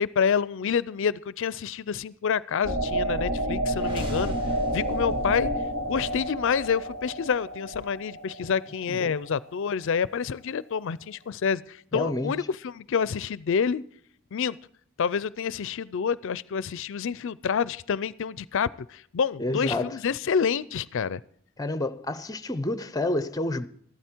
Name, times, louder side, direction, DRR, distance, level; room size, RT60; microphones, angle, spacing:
voice 1, 0.0-4.3 4.7-5.5 5.9-13.8 14.3-14.6 15.0-21.2, left 6 dB, 65° left, 0.4 m, -28 dB
sound 1, 2.6-9.3, right 1 dB, 60° right, 2.2 m, -30 dB
sound 2, 3.7-7.7, left 1 dB, 25° right, 2.9 m, -43 dB
voice 2, 11.9-12.4 19.4-20.0 21.6-23.7, left 2 dB, 15° left, 0.7 m, -29 dB
14.5 x 12.5 x 4.4 m
head